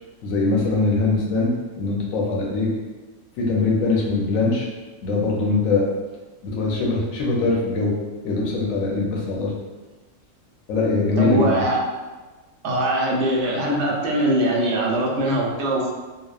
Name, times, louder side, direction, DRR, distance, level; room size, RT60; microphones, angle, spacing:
voice 1, 0.2-2.7 3.4-4.7 5.0-5.8 6.4-7.9 8.2-9.5 10.7-11.5, left 3 dB, 80° left, -2 dB, 1.1 m, -22 dB
voice 2, 11.2-11.8 12.6-15.9, right 1 dB, 70° right, -2 dB, 0.9 m, -21 dB
2.9 x 2.0 x 2.3 m, 1.2 s
omnidirectional pair, 1.4 m